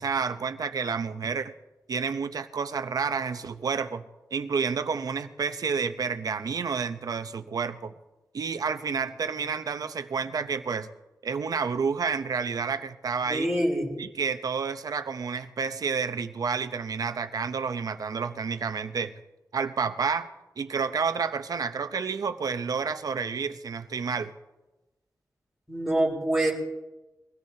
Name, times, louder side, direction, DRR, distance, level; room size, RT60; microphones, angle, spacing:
voice 1, 0.0-1.5 1.9-4.0 4.3-7.9 8.3-10.9 11.2-13.5 14.0-19.1 19.5-20.3 20.6-24.3, right 5 dB, 65° right, 10 dB, 0.8 m, -30 dB
voice 2, 13.3-13.9 25.7-26.5, right 1 dB, ahead, -3 dB, 4.1 m, -25 dB
23.5 x 17.0 x 2.9 m, 1.1 s
wide cardioid pair, 110°, 7 cm